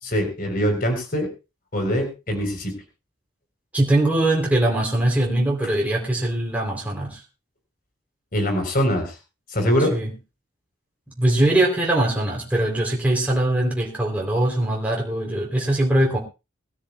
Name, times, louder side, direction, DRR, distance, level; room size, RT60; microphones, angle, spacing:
voice 1, 0.0-1.3 1.7-2.8 8.3-9.2 9.5-9.9, equal, 45° left, 4 dB, 4.0 m, -23 dB
voice 2, 3.7-7.2 9.9-10.1 11.2-16.2, right 1 dB, 10° right, -2 dB, 3.3 m, -21 dB
22.5 x 13.0 x 2.3 m, 0.28 s
head